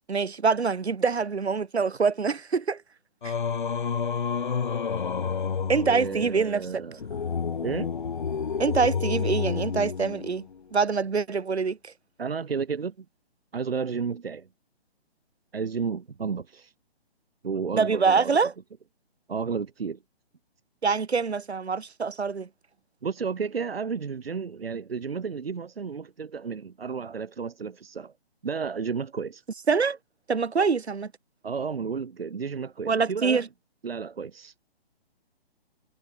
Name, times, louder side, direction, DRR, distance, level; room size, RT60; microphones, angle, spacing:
voice 1, 0.1-2.8 3.2-3.3 5.7-6.8 8.6-10.4 10.7-11.9 17.7-18.5 20.8-22.5 29.7-30.0 30.3-31.1 32.9-33.4, right 5 dB, 85° right, 5.0 m, -25 dB
Singing, 3.2-10.6, left 6 dB, 50° left, 4.6 m, -30 dB
voice 2, 5.9-7.0 7.6-7.9 12.2-13.0 13.5-14.5 15.5-16.7 17.4-18.4 19.3-20.0 23.0-28.1 28.4-29.4 31.4-33.5 33.8-34.7, right 5 dB, 65° right, 3.0 m, -32 dB
hypercardioid pair, 180°, 32 cm